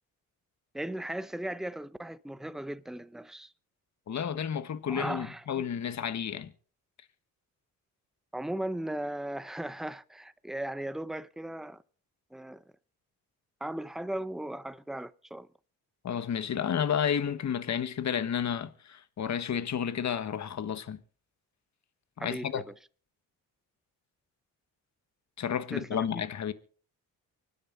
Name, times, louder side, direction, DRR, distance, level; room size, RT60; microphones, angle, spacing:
voice 1, 0.7-3.5 4.9-5.6 8.3-11.8 12.3-12.6 13.6-15.5 22.2-22.6 25.7-26.2, right 1 dB, ahead, 0.8 m, -37 dB
voice 2, 4.1-6.5 16.0-21.0 22.2-22.6 25.4-26.5, left 8 dB, 50° left, 1.4 m, -31 dB
24.5 x 9.9 x 4.0 m
cardioid pair, 80°, 35 cm